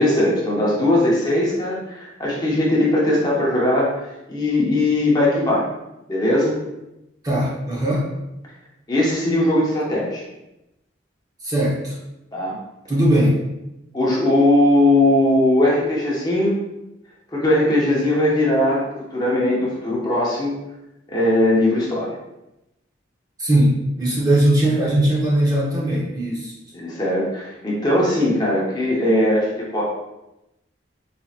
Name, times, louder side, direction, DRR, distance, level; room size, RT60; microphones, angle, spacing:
voice 1, 0.0-3.9 4.3-5.7 6.1-6.6 8.9-10.2 12.3-12.6 13.9-16.5 17.3-20.5 21.1-22.1 26.7-29.8, left 1 dB, 20° left, -5 dB, 0.7 m, -19 dB
voice 2, 7.2-8.1 11.4-12.0 12.9-13.4 23.4-26.5, right 1 dB, 20° right, -5 dB, 0.7 m, -19 dB
4.1 x 2.8 x 2.4 m, 0.92 s
head